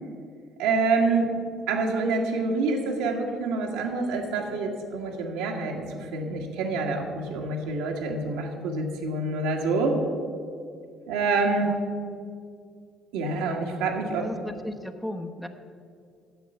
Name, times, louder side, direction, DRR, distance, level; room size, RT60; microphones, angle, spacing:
voice 1, 0.6-1.3 1.7-10.0 11.1-11.8 13.1-14.3, right 3 dB, 75° right, 1 dB, 1.5 m, -27 dB
voice 2, 14.2-15.5, left 1 dB, 5° left, 4 dB, 1.0 m, -36 dB
9.4 x 7.4 x 8.2 m, 2.3 s
hypercardioid pair, 50°, 0 cm